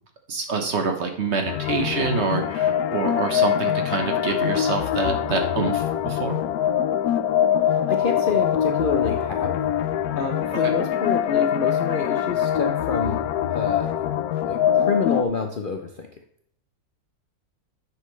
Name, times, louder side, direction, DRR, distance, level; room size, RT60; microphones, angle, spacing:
voice 1, 0.3-6.4 10.5-10.7, right 4 dB, 50° right, 4 dB, 1.3 m, -26 dB
sound 1, 1.5-15.2, left 10 dB, 80° left, 1.1 m, -23 dB
voice 2, 7.6-9.7 10.1-14.2 14.4-16.1, left 4 dB, 50° left, 4 dB, 0.6 m, -28 dB
9.8 x 6.2 x 3.1 m, 0.70 s
omnidirectional pair, 1.6 m